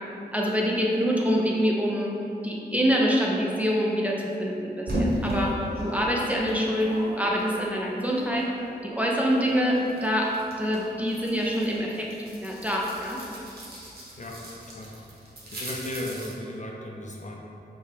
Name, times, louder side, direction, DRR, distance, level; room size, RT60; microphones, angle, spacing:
voice 1, 0.3-2.1 2.4-5.5 5.8-8.5 8.8-10.3 10.6-12.1 12.4-13.2, equal, 10° right, -3 dB, 0.5 m, -25 dB
sound 1, 4.9-8.8 9.1-16.3, equal, 60° right, 1.2 m, -36 dB
voice 2, 14.2-14.9 15.5-17.4, left 1 dB, 45° left, -2 dB, 0.6 m, -36 dB
5.5 x 2.4 x 3.3 m, 2.7 s
cardioid pair, 60°, 18 cm